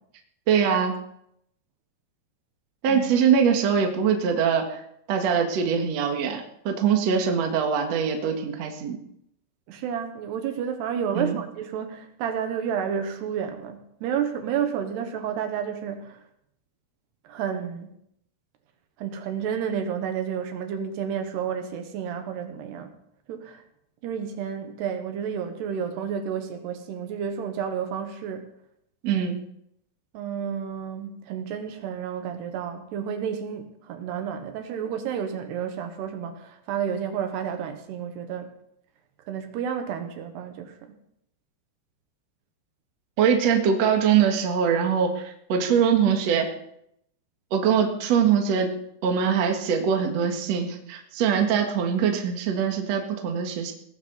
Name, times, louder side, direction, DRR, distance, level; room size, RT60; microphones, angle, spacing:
voice 1, 0.5-1.0 2.8-4.8 5.1-9.0 11.1-11.4 29.0-29.4 43.2-46.5 47.5-48.7 49.0-53.7, right 7 dB, 55° right, 3 dB, 2.1 m, -23 dB
voice 2, 9.7-16.2 17.2-17.9 19.0-22.9 23.3-23.6 24.0-28.5 30.1-38.5 39.3-40.9, right 8 dB, 75° right, 6 dB, 3.2 m, -31 dB
18.0 x 13.0 x 4.1 m, 0.75 s
omnidirectional pair, 5.0 m